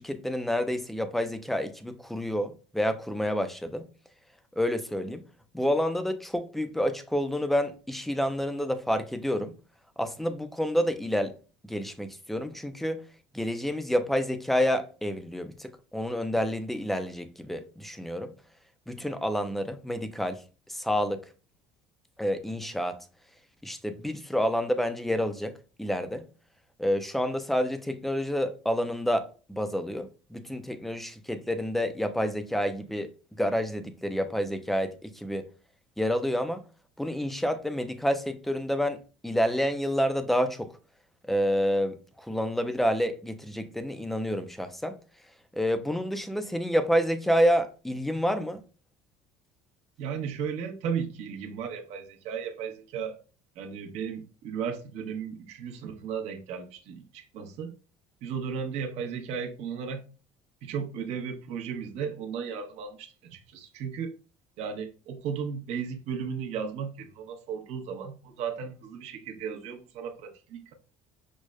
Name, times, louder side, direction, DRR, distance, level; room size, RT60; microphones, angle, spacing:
voice 1, 0.0-3.9 4.6-5.2 5.5-9.5 10.0-11.3 11.7-13.0 13.3-18.3 18.9-20.4 20.7-21.3 22.2-23.0 23.6-26.3 26.8-35.5 36.0-36.6 37.0-40.7 41.3-45.0 45.5-48.6, equal, ahead, 0.3 m, -29 dB
voice 2, 50.0-53.2 53.6-57.7 58.2-60.0 60.6-64.2 64.6-70.7, right 6 dB, 65° right, 0.8 m, -35 dB
6.1 x 2.1 x 2.2 m
cardioid pair, 140°, 12 cm